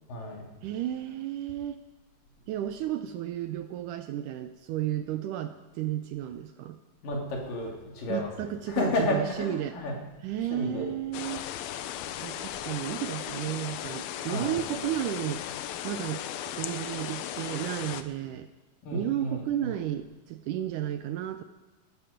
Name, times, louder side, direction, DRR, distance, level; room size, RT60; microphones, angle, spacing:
voice 1, 0.1-0.5 7.0-10.0 10.5-10.9 14.3-14.6 18.8-19.8, left 1 dB, 70° left, 0 dB, 4.2 m, -32 dB
voice 2, 0.6-1.8 2.5-6.8 8.1-9.8 10.2-11.4 12.2-15.4 15.8-16.3 16.6-18.5 18.9-21.4, right 12 dB, 80° right, 9 dB, 1.9 m, -33 dB
sound 1, 11.1-18.0, left 11 dB, 90° left, 2.6 m, -36 dB
18.0 x 13.5 x 5.1 m, 1.2 s
omnidirectional pair, 4.1 m